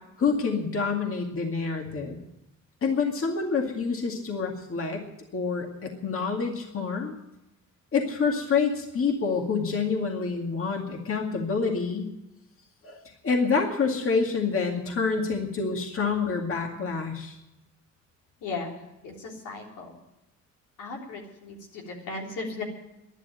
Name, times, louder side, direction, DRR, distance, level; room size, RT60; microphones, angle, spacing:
voice 1, 0.2-2.2 2.8-5.0 5.3-7.1 7.9-12.1 12.8-17.4, left 5 dB, 45° left, 2 dB, 2.1 m, -27 dB
voice 2, 18.4-18.7 19.0-19.9 20.8-22.6, left 3 dB, 85° left, -1 dB, 3.5 m, -36 dB
11.5 x 11.5 x 9.2 m, 0.92 s
cardioid pair, 90°, 30 cm